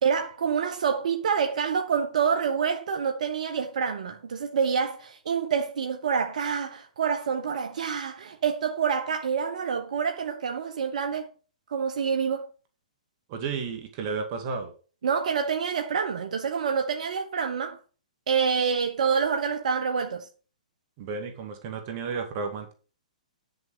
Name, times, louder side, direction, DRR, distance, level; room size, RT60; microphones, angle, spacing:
voice 1, 0.0-11.3 11.7-12.5 15.0-17.8 18.3-20.3, right 6 dB, 70° right, 1.2 m, -27 dB
voice 2, 13.3-14.7 21.0-22.7, right 5 dB, 40° right, 2.3 m, -32 dB
10.5 x 6.8 x 5.0 m
hypercardioid pair, 130°, 4 cm